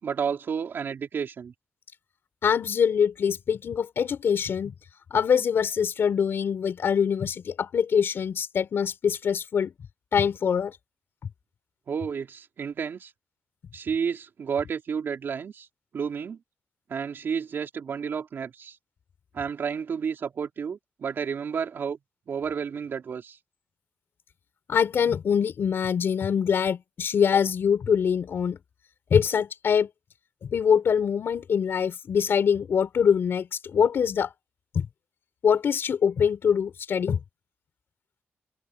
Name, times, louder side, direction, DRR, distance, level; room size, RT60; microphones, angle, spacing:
voice 1, 0.0-1.5 11.9-13.1 13.7-15.7 15.9-16.4 16.9-18.8 19.3-22.0 22.3-23.4, right 6 dB, 60° right, 3.5 m, -31 dB
voice 2, 2.4-4.7 5.1-9.7 10.1-10.8 24.7-28.6 29.1-29.9 30.4-34.3 34.7-34.9 35.4-37.2, left 7 dB, 65° left, 4.9 m, -24 dB
open air
wide cardioid pair, 135°, 4 cm